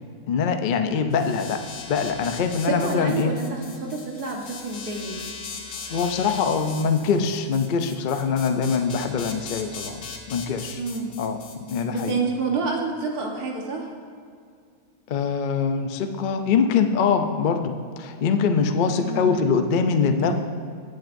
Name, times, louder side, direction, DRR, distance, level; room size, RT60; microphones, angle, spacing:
voice 1, 0.3-3.3 5.9-10.0 10.3-10.8 11.2-12.2 15.1-20.3, left 5 dB, 55° left, 6 dB, 0.5 m, -23 dB
sound 1, 1.1-12.1, left 5 dB, 85° left, 1.4 m, -39 dB
voice 2, 2.7-5.1 10.8-11.2 11.9-13.9 19.0-19.6 20.2-20.3, right 4 dB, 90° right, 0 dB, 1.8 m, -28 dB
18.0 x 7.6 x 2.6 m, 2.2 s
omnidirectional pair, 1.6 m